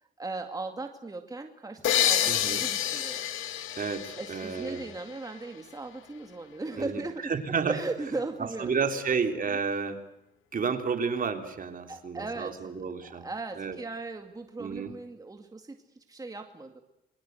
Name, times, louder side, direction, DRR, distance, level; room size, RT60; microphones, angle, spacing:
voice 1, 0.2-3.3 4.2-9.0 9.5-9.6 11.9-12.6 13.0-16.8, right 3 dB, 20° right, 5 dB, 2.3 m, -38 dB
sound 1, 1.8-5.4, left 11 dB, 85° left, 1.9 m, -29 dB
voice 2, 2.3-2.6 3.8-4.8 6.8-7.0 7.3-7.7 8.6-10.0 10.5-13.2 13.6-13.8 14.6-14.9, right 5 dB, 45° right, 6 dB, 3.4 m, -31 dB
28.0 x 22.5 x 8.0 m, 0.88 s
cardioid pair, 90°, 20 cm